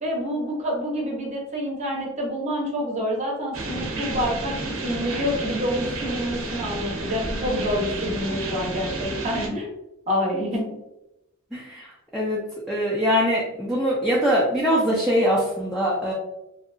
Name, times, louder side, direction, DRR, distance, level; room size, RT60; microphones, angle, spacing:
voice 1, 0.0-9.7 10.1-10.8, equal, 35° right, -2 dB, 0.7 m, -27 dB
sound 1, 3.5-9.5, right 2 dB, 80° right, 0.7 m, -31 dB
voice 2, 11.5-12.4 12.7-16.1, equal, ahead, -7 dB, 0.4 m, -23 dB
2.7 x 2.2 x 2.4 m, 0.90 s
head